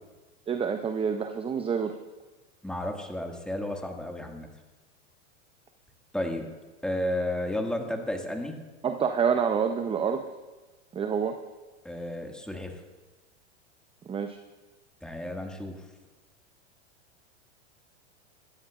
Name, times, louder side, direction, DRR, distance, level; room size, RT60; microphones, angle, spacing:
voice 1, 0.5-2.0 8.8-10.2 10.9-11.4 14.1-14.4, right 6 dB, 15° right, 7 dB, 0.6 m, -27 dB
voice 2, 2.6-4.5 6.1-6.5 6.8-8.6 11.8-12.8 15.0-15.8, left 1 dB, ahead, 2 dB, 1.8 m, -32 dB
22.5 x 13.5 x 2.4 m, 1.3 s
hypercardioid pair, 110°, 36 cm